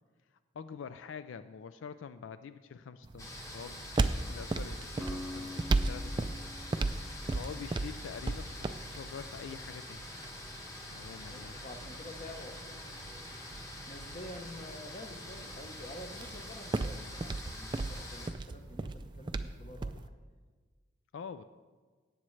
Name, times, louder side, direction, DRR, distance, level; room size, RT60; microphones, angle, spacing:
voice 1, 0.5-3.8 4.3-6.4 6.9-10.1 10.9-11.6 21.1-21.4, left 6 dB, 80° left, 12 dB, 0.3 m, -46 dB
sound 1, 3.0-20.1, right 2 dB, 25° right, 0.3 m, -37 dB
sound 2, 3.2-18.3, left 1 dB, 15° left, 1.2 m, -46 dB
Acoustic guitar, 5.0-9.1, left 1 dB, ahead, 0.7 m, -46 dB
voice 2, 11.3-18.9 19.2-20.1, left 1 dB, 35° left, 6 dB, 0.9 m, -49 dB
17.5 x 7.3 x 3.2 m, 1.4 s
head